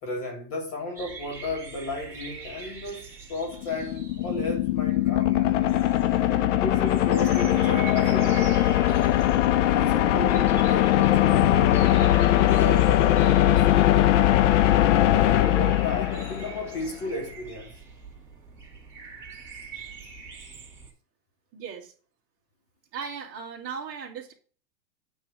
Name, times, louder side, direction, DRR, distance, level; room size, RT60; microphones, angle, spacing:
voice 1, 0.0-5.6 6.6-8.6 9.5-14.4 15.1-17.7, left 2 dB, 30° left, 1.7 m, -34 dB
sound 1, 0.9-20.9, right 5 dB, 5° right, 2.4 m, -44 dB
sound 2, 3.5-16.7, left 13 dB, 50° left, 0.4 m, -21 dB
voice 2, 21.5-21.9 22.9-24.3, right 6 dB, 30° right, 2.0 m, -37 dB
8.8 x 3.2 x 5.9 m
supercardioid pair, 155°, 49 cm